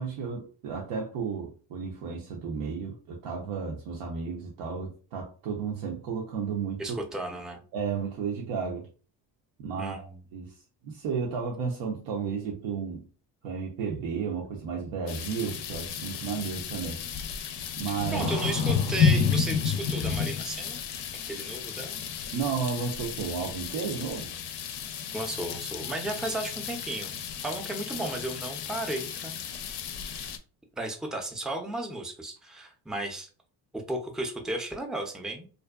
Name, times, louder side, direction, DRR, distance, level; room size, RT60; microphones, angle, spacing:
voice 1, 0.0-6.8 7.7-8.9 9.6-10.0 10.3-10.6 10.8-13.0 13.4-17.0 17.8-18.3 22.3-24.3, right 6 dB, 75° right, 0.7 m, -33 dB
voice 2, 6.8-7.6 9.8-10.2 17.8-20.8 21.2-22.0 25.1-29.4 30.8-33.3 33.7-35.5, right 2 dB, ahead, 0.4 m, -34 dB
sound 1, 15.1-30.4, left 6 dB, 60° left, 0.5 m, -31 dB
sound 2, 18.2-19.9, right 3 dB, 90° right, 1.0 m, -41 dB
2.6 x 2.1 x 2.3 m
supercardioid pair, 75°, 47 cm